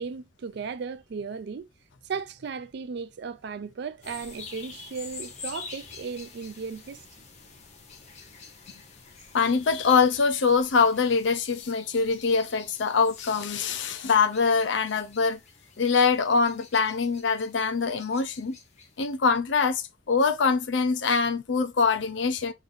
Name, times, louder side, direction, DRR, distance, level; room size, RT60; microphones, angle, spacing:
voice 1, 0.0-1.7 2.0-7.0, right 5 dB, 55° right, 0.4 m, -36 dB
sound 1, 4.0-19.2, left 5 dB, 35° left, 0.8 m, -47 dB
voice 2, 9.3-15.4 15.8-18.6 19.0-22.5, left 5 dB, 65° left, 0.5 m, -24 dB
3.1 x 2.6 x 3.8 m
head